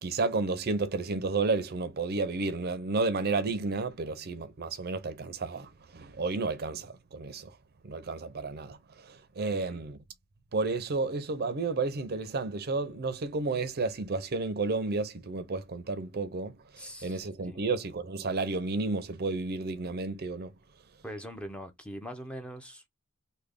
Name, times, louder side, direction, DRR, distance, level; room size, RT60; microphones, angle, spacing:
voice 1, 0.0-7.5 7.8-8.8 9.0-10.0 10.5-16.5 17.0-20.5, right 3 dB, 45° right, 0.5 m, -31 dB
voice 2, 16.8-17.6 21.0-22.8, equal, 5° left, 0.5 m, -42 dB
3.2 x 2.2 x 3.6 m
head